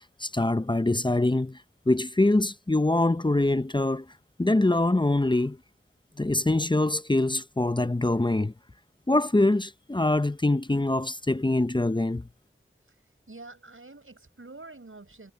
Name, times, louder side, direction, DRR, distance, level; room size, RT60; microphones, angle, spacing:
voice 1, 0.2-1.6 1.9-4.1 4.4-5.6 6.2-8.5 9.1-12.3, left 2 dB, 20° left, 0.6 m, -24 dB
voice 2, 13.3-15.3, right 3 dB, 90° right, 5.6 m, -46 dB
wide cardioid pair, 45°, 21 cm